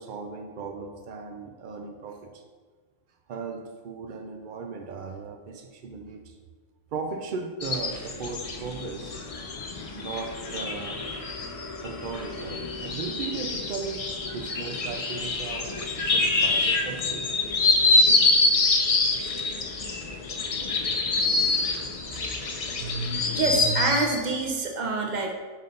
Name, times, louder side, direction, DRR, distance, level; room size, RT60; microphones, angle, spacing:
voice 1, 0.0-2.4 3.3-6.4 6.9-9.2 9.9-11.0 11.8-17.3, right 4 dB, 80° right, 4 dB, 0.4 m, -37 dB
sound 1, 7.6-24.2, left 3 dB, 65° left, 0.3 m, -26 dB
voice 2, 22.5-25.3, right 3 dB, 40° right, 2 dB, 0.7 m, -27 dB
5.3 x 4.1 x 5.2 m, 1.5 s
omnidirectional pair, 1.4 m